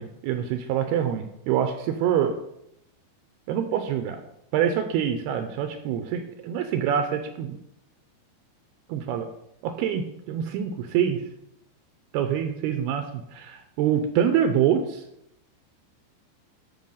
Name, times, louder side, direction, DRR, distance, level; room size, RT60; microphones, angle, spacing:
voice 1, 0.0-2.4 3.5-4.2 4.5-7.6 8.9-9.3 9.6-11.2 12.1-15.0, right 9 dB, 80° right, 8 dB, 2.6 m, -25 dB
12.0 x 5.7 x 5.6 m, 0.77 s
omnidirectional pair, 4.9 m